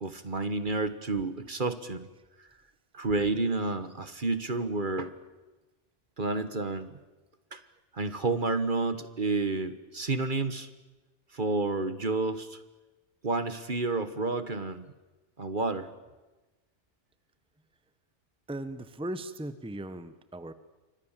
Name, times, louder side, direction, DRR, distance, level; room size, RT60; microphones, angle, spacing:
voice 1, 0.0-2.1 2.9-5.1 6.2-7.0 7.5-7.6 7.9-10.7 11.3-12.6 13.2-14.9 15.4-15.9, right 3 dB, 45° right, 12 dB, 1.5 m, -30 dB
voice 2, 18.5-20.5, right 1 dB, 5° right, 12 dB, 1.1 m, -38 dB
29.0 x 24.5 x 7.4 m, 1.2 s
omnidirectional pair, 1.2 m